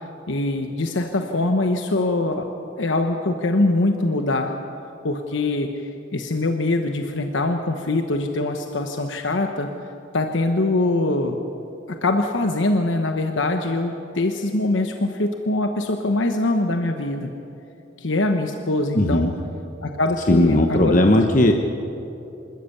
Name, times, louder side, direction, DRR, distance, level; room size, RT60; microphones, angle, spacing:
voice 1, 0.3-2.5 2.8-4.6 5.0-9.7 10.1-11.4 12.0-17.3 18.0-19.3 19.8-21.0 21.4-21.5, left 2 dB, 90° left, 5 dB, 1.1 m, -23 dB
voice 2, 18.9-19.3 20.3-21.5, left 1 dB, 45° left, 4 dB, 1.0 m, -17 dB
26.0 x 13.5 x 8.5 m, 2.9 s
head